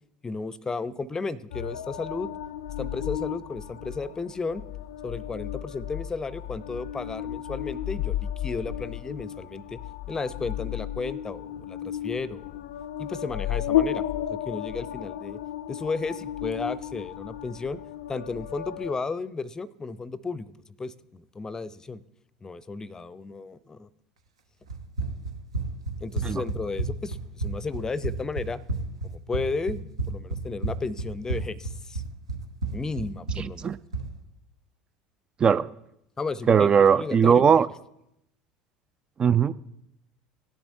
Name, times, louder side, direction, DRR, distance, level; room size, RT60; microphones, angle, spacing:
voice 1, 0.2-2.3 2.8-4.6 5.0-9.8 10.1-12.6 13.0-15.4 15.7-17.8 18.1-20.5 20.8-22.0 22.4-23.9 26.0-28.6 29.0-32.0 32.7-33.7 36.2-37.4, left 4 dB, 20° left, 0.6 m, -34 dB
sound 1, 1.5-18.9, left 11 dB, 70° left, 0.5 m, -33 dB
Run, 24.7-34.1, right 2 dB, 80° right, 1.1 m, -32 dB
voice 2, 33.4-33.8 35.4-35.7 36.5-37.7 39.2-39.5, right 7 dB, 30° right, 0.3 m, -19 dB
17.5 x 10.0 x 2.7 m
figure-of-eight pair, 70°, 3 cm